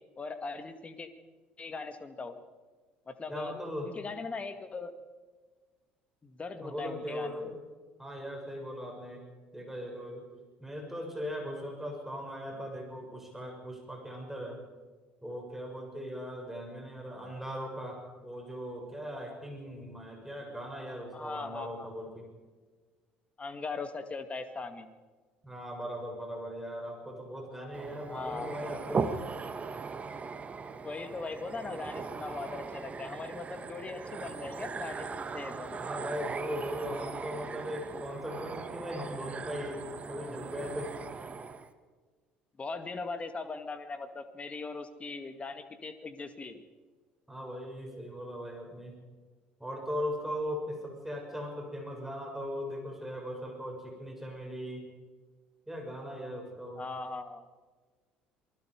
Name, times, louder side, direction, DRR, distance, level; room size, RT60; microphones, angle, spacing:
voice 1, 0.2-1.1 1.6-2.4 3.1-3.5 3.8-4.9 6.2-7.4 21.1-21.9 23.4-24.9 28.1-28.6 30.8-35.8 42.6-46.6 56.8-57.5, left 3 dB, 25° left, 9 dB, 2.1 m, -40 dB
voice 2, 3.3-3.9 6.6-7.5 8.0-9.2 9.5-10.3 10.6-14.6 15.2-22.3 25.4-29.3 35.8-41.0 47.3-48.9 49.6-54.8 55.7-56.8, equal, 5° right, 1 dB, 6.8 m, -39 dB
sound 1, 27.7-41.7, right 5 dB, 25° right, 1.6 m, -39 dB
27.5 x 20.5 x 5.0 m, 1.4 s
figure-of-eight pair, 55°, 5 cm